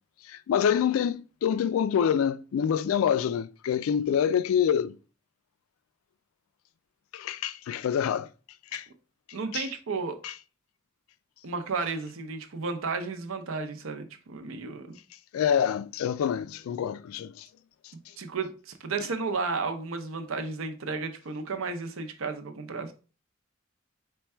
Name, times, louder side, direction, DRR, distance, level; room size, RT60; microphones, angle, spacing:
voice 1, 0.3-4.9 7.1-8.3 8.7-8.9 9.5-9.7 10.2-10.3 15.3-17.5, left 8 dB, 85° left, 0.3 m, -26 dB
voice 2, 9.3-10.2 11.4-15.0 18.2-22.9, right 4 dB, 80° right, 0.6 m, -33 dB
4.5 x 2.2 x 4.2 m
head